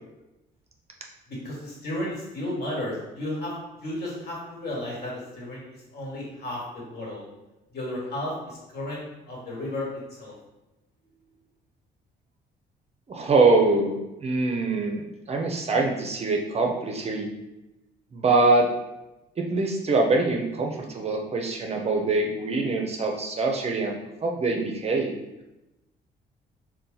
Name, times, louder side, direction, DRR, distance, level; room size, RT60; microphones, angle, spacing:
voice 1, 1.3-3.5 3.8-5.6 5.9-7.3 7.7-10.3, left 1 dB, 60° left, -4 dB, 1.5 m, -33 dB
voice 2, 13.1-17.3 18.1-18.7 19.4-25.1, right 3 dB, 35° right, 1 dB, 0.5 m, -24 dB
2.7 x 2.2 x 3.8 m, 0.98 s
supercardioid pair, 75°, 19 cm